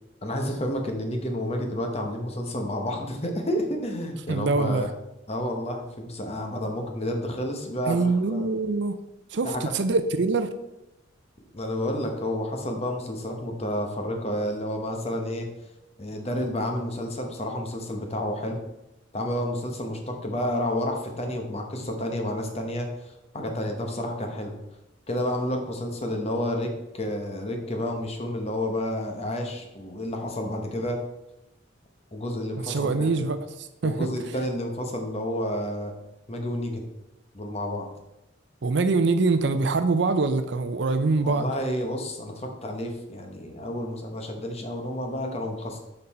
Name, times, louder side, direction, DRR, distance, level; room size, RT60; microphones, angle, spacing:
voice 1, 0.2-4.9 5.3-8.5 9.4-9.7 11.5-15.5 16.0-18.6 19.1-24.5 25.1-31.0 32.1-33.3 33.8-35.9 36.3-36.8 37.3-37.9 41.2-45.8, left 1 dB, 35° left, 3 dB, 1.0 m, -30 dB
voice 2, 4.3-4.9 7.9-8.9 9.3-10.5 32.6-34.1 38.6-41.5, right 3 dB, 65° right, 10 dB, 0.5 m, -24 dB
6.7 x 5.4 x 4.2 m, 0.94 s
head